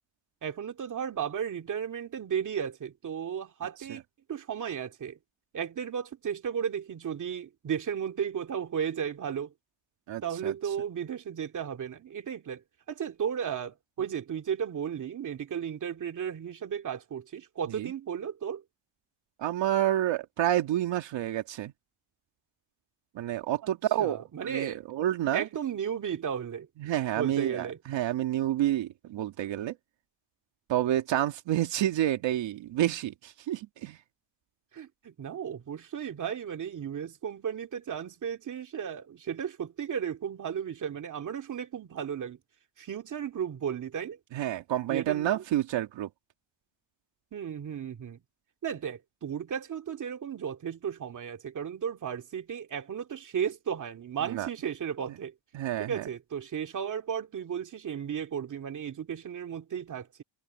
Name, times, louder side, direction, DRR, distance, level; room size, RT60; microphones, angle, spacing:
voice 1, 0.4-4.0 4.3-5.2 5.5-9.5 10.2-12.6 12.9-18.6 23.6-23.7 24.0-24.8 25.3-26.7 27.2-27.8 34.7-42.4 42.8-44.2 44.9-45.4 47.3-48.2 48.6-55.3 55.8-60.2, right 8 dB, 40° right, 2.4 m, -34 dB
voice 2, 10.1-10.5 17.7-17.9 19.4-21.7 23.2-25.4 26.8-29.7 30.7-34.0 44.3-46.1 54.2-54.5 55.5-56.0, right 12 dB, 70° right, 2.1 m, -29 dB
cardioid pair, 135°, 46 cm